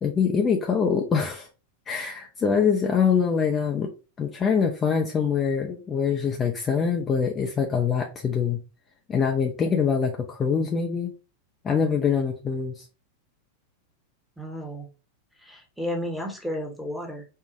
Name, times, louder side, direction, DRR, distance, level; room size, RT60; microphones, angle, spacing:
voice 1, 0.0-1.5 1.9-3.9 4.2-8.6 9.1-11.1 11.6-12.8, left 6 dB, 20° left, 0.6 m, -24 dB
voice 2, 14.4-14.9 15.4-17.3, equal, ahead, 1.1 m, -33 dB
4.6 x 2.4 x 2.6 m
figure-of-eight pair, 90°, 0 cm